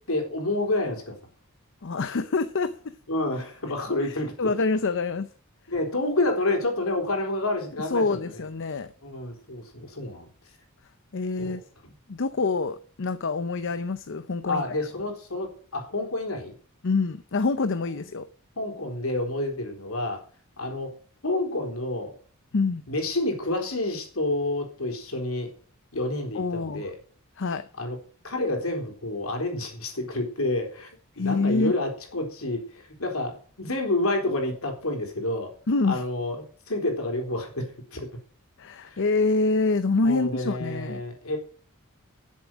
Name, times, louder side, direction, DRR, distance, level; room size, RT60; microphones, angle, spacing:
voice 1, 0.1-1.2 3.1-4.5 5.7-8.3 9.0-10.3 11.4-11.9 14.5-16.5 18.6-20.2 20.6-21.0 21.2-22.2 22.9-25.5 25.9-27.0 27.8-28.0 28.2-30.9 31.2-35.5 35.9-38.1 38.8-39.0 40.0-41.4, left 2 dB, 75° left, 2 dB, 4.0 m, -29 dB
voice 2, 1.8-2.7 4.0-5.3 7.9-8.9 11.1-11.6 12.1-14.6 16.8-18.3 22.5-22.8 26.3-26.9 27.4-27.6 31.2-31.7 35.7-36.0 38.6-41.0, left 3 dB, 60° left, 11 dB, 0.7 m, -26 dB
11.5 x 7.6 x 6.1 m, 0.42 s
head